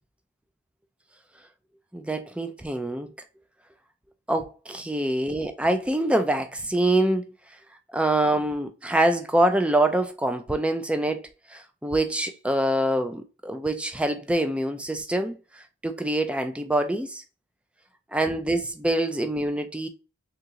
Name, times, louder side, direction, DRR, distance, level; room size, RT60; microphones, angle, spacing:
voice 1, 1.9-3.1 4.3-7.3 7.9-11.2 11.5-17.2 18.1-19.9, right 1 dB, 5° right, 0.3 m, -25 dB
3.7 x 2.8 x 2.7 m
head